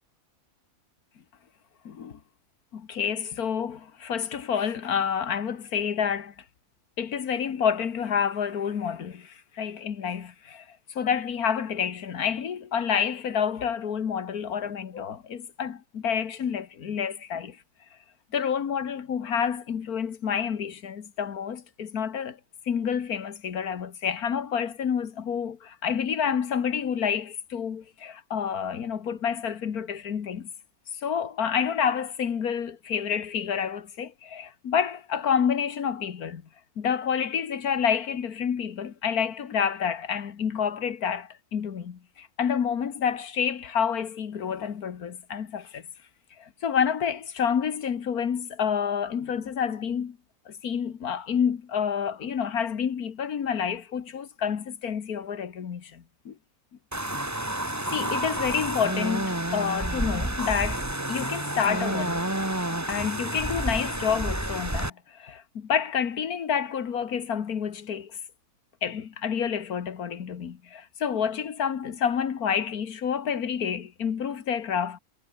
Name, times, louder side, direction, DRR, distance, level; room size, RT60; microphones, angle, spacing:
voice 1, 1.9-2.2 2.7-6.3 7.0-17.6 18.3-22.4 22.7-30.5 31.0-36.4 36.8-45.9 46.4-50.2 50.5-56.4 57.5-62.3 62.9-68.2 68.8-75.0, left 7 dB, 80° left, 1.9 m, -29 dB
sound 1, 56.9-64.9, right 1 dB, 10° right, 2.1 m, -29 dB
omnidirectional pair, 1.6 m